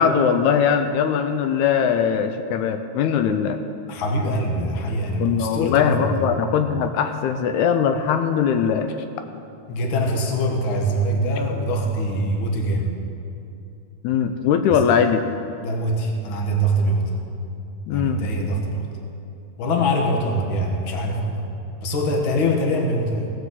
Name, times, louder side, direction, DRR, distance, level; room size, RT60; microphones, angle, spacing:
voice 1, 0.0-3.6 5.2-9.0 14.0-15.2 17.9-18.2, left 7 dB, 85° left, 8 dB, 2.0 m, -20 dB
voice 2, 3.9-6.3 9.7-12.9 14.7-14.8 15.6-17.1 17.9-18.9 19.6-21.4 21.8-23.3, equal, 50° left, 2 dB, 1.9 m, -23 dB
16.5 x 6.3 x 7.3 m, 2.7 s
omnidirectional pair, 3.4 m